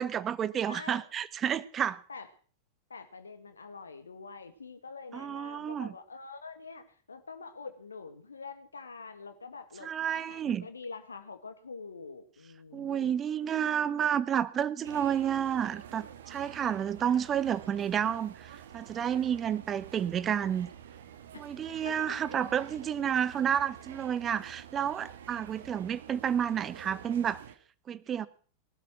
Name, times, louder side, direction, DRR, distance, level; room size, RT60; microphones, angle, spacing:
voice 1, 0.0-2.0 5.1-5.9 9.8-10.7 12.7-20.7 21.3-27.4 27.9-28.3, right 9 dB, 25° right, 17 dB, 1.0 m, -30 dB
voice 2, 0.7-1.0 2.1-2.3 2.9-13.1 21.3-21.4 21.8-22.2, left 4 dB, 75° left, 10 dB, 1.8 m, -45 dB
sound 1, 14.8-27.6, right 9 dB, 60° right, 1.6 m, -48 dB
19.0 x 12.0 x 6.1 m, 0.43 s
figure-of-eight pair, 90°, 0 cm